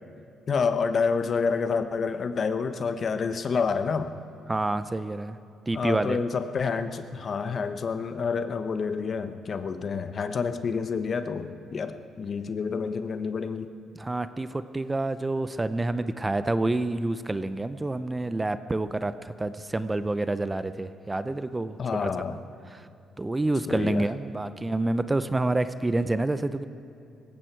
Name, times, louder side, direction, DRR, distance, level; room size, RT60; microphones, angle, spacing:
voice 1, 0.5-4.1 5.7-13.7 21.8-22.4 23.7-24.1, left 5 dB, 50° left, 9 dB, 0.9 m, -28 dB
voice 2, 4.5-5.4 5.7-6.2 13.9-21.8 22.0-22.1 22.7-22.9 23.2-26.7, right 2 dB, 15° right, 12 dB, 0.6 m, -28 dB
19.0 x 15.5 x 4.6 m, 2.7 s
cardioid pair, 90°, 0 cm